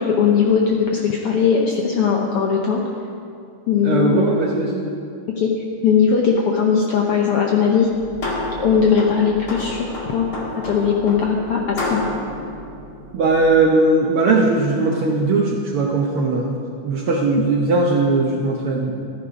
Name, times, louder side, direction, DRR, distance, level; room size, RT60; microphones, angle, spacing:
voice 1, 0.0-2.8 3.7-4.3 5.4-7.9 8.6-10.3 10.6-12.0, left 6 dB, 75° left, 0 dB, 1.4 m, -19 dB
voice 2, 3.8-4.9 13.1-16.6 16.8-18.9, right 3 dB, 70° right, -1 dB, 1.4 m, -19 dB
sound 1, 7.8-13.6, left 2 dB, 40° left, 2.0 m, -30 dB
14.0 x 9.8 x 5.1 m, 2.5 s
omnidirectional pair, 3.5 m